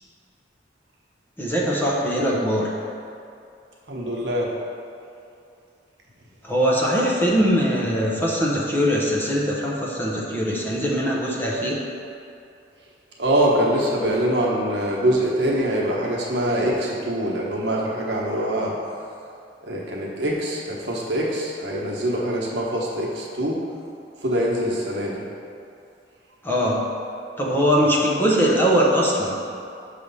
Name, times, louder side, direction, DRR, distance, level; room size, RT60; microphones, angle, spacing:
voice 1, 1.4-2.7 6.4-11.8 26.4-26.8 27.4-29.3, equal, 10° left, -4 dB, 0.9 m, -21 dB
voice 2, 3.9-4.5 13.2-18.7 19.6-23.6 24.2-25.2, right 1 dB, 80° right, -3 dB, 1.1 m, -24 dB
6.6 x 3.4 x 5.5 m, 2.6 s
head